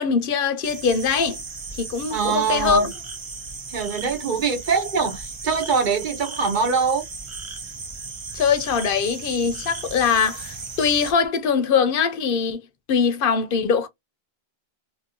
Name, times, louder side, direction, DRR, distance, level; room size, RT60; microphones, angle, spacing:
voice 1, 0.0-1.4 1.8-2.9 8.3-13.9, left 6 dB, 65° left, 0.7 m, -22 dB
sound 1, 0.6-11.1, right 4 dB, 35° right, 0.5 m, -36 dB
voice 2, 2.1-2.9 3.7-7.0, right 5 dB, 55° right, 0.9 m, -23 dB
2.9 x 2.6 x 2.7 m
omnidirectional pair, 1.0 m